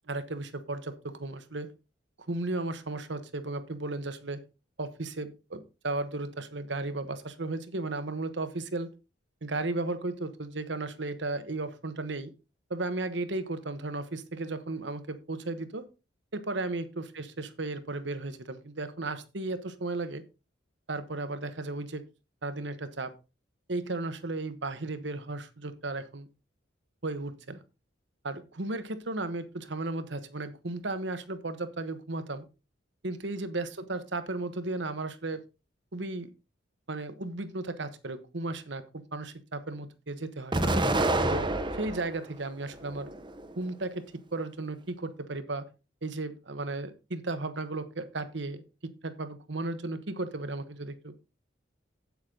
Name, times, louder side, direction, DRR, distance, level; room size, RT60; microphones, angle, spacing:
voice 1, 0.1-1.7 2.3-4.4 4.8-8.9 9.4-12.3 12.7-15.8 16.3-20.2 20.9-22.0 22.4-23.1 23.7-26.3 27.0-27.6 28.2-32.5 33.0-35.4 35.9-36.3 36.9-40.6 41.3-41.5 41.8-43.1 43.6-44.1 44.3-45.7 46.0-51.1, right 2 dB, 65° right, 11 dB, 1.2 m, -35 dB
Explosion, 40.5-42.2 42.7-43.6, right 2 dB, 25° right, 1.0 m, -28 dB
8.5 x 8.1 x 3.9 m, 0.29 s
head